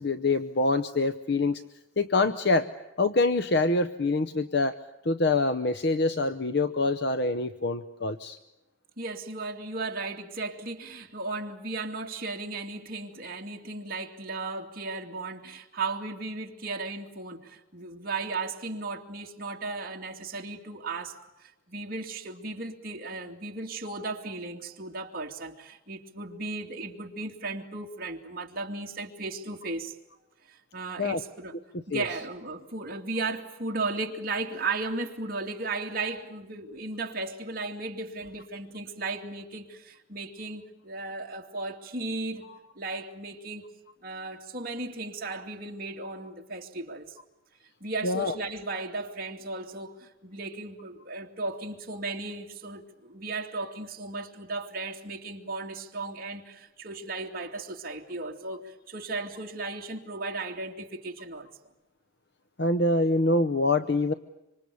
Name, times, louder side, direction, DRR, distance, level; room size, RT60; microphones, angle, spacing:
voice 1, 0.0-1.6 2.0-2.7 3.0-4.8 5.0-8.4 31.0-31.2 31.7-32.0 48.0-48.3 62.6-64.1, left 2 dB, 55° left, 0.8 m, -25 dB
voice 2, 9.0-29.9 30.5-31.5 31.9-42.4 42.8-43.7 44.0-47.1 47.8-61.5, right 3 dB, 45° right, 2.6 m, -35 dB
26.0 x 25.5 x 6.9 m
head